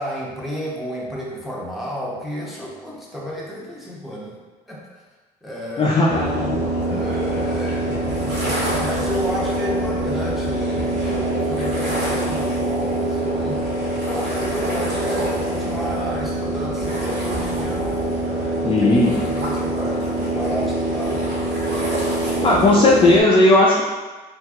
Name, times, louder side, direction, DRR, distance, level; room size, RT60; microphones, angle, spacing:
voice 1, 0.0-4.4 4.7-4.8 5.4-5.9 6.8-13.6 14.1-18.9 19.2-21.3, equal, ahead, -6 dB, 0.9 m, -31 dB
voice 2, 5.8-6.6 6.9-7.0 18.6-19.2 22.4-23.8, left 2 dB, 30° left, -3 dB, 0.4 m, -16 dB
sound 1, 6.1-23.2, right 1 dB, 75° right, 0.9 m, -24 dB
2.9 x 2.5 x 3.6 m, 1.3 s
cardioid pair, 110°, 17 cm